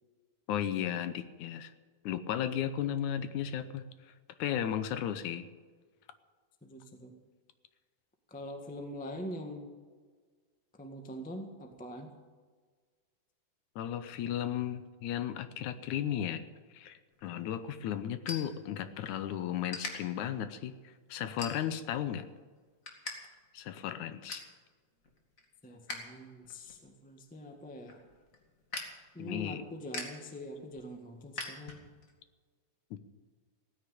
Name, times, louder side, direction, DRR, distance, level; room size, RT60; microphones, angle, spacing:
voice 1, 0.5-1.7 2.0-3.8 4.4-5.5 13.8-16.4 16.7-22.3 23.5-24.4 29.2-29.6 32.9-33.0, left 10 dB, 75° left, 11 dB, 2.2 m, -35 dB
voice 2, 6.6-7.2 8.3-9.7 10.8-12.1 25.6-28.0 29.1-31.8, equal, 10° left, 4 dB, 0.4 m, -44 dB
sound 1, 17.1-19.2 19.7-19.9 20.5-20.7 21.4-21.9 22.3-23.2 23.4-23.5 23.9-24.5 25.0-26.1 26.4-32.1, left 3 dB, 30° left, 2.1 m, -43 dB
16.5 x 9.8 x 8.4 m, 1.5 s
omnidirectional pair, 3.6 m